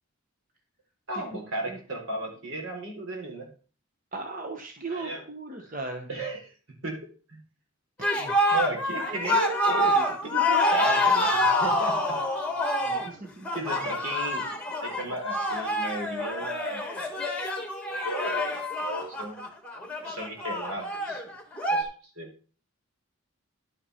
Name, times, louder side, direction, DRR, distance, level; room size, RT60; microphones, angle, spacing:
voice 1, 1.1-3.5 4.9-5.3 6.1-6.5 6.8-7.4 8.5-12.2 12.9-13.1 13.5-14.4 14.8-16.9 17.3-17.4 18.0-18.5 18.8-19.5 20.0-21.2 21.7-21.9 22.2-22.3, right 1 dB, 65° right, 0 dB, 3.9 m, -35 dB
voice 2, 4.1-6.1 8.2-8.3 12.9-13.5, right 3 dB, 40° right, 4 dB, 1.0 m, -37 dB
sound 1, 8.0-21.8, left 1 dB, 5° left, 1.6 m, -27 dB
11.0 x 5.9 x 5.6 m, 0.38 s
head